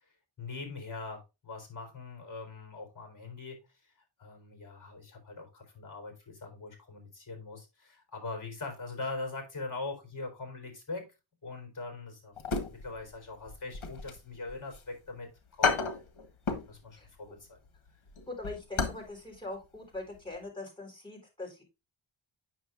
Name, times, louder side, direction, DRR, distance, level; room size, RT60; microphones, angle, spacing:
voice 1, 0.4-3.6 4.2-11.0 11.4-16.0 16.7-17.6, left 3 dB, 40° left, 3 dB, 3.9 m, -42 dB
sound 1, 12.4-13.2 13.5-14.8 15.2-15.3 15.6-16.7 17.0-17.3 17.7-19.1 19.3-19.4 19.9-20.2 20.4-20.5, left 4 dB, 75° left, 1.4 m, -32 dB
voice 2, 18.3-21.6, left 2 dB, 10° left, -2 dB, 3.8 m, -42 dB
9.2 x 6.3 x 2.5 m, 0.25 s
wide cardioid pair, 100°, 49 cm